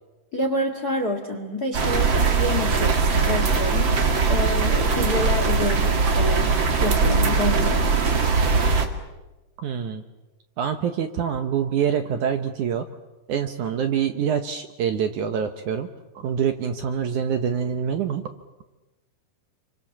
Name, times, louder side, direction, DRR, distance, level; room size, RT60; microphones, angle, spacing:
voice 1, 0.3-8.1, left 1 dB, 40° left, 5 dB, 1.4 m, -28 dB
sound 1, 1.7-8.9, right 4 dB, 40° right, 2.1 m, -21 dB
voice 2, 9.6-10.0 10.6-12.9 13.3-15.9 16.1-18.2, right 8 dB, 70° right, 7 dB, 2.1 m, -25 dB
29.0 x 24.5 x 7.3 m, 1.1 s
omnidirectional pair, 4.6 m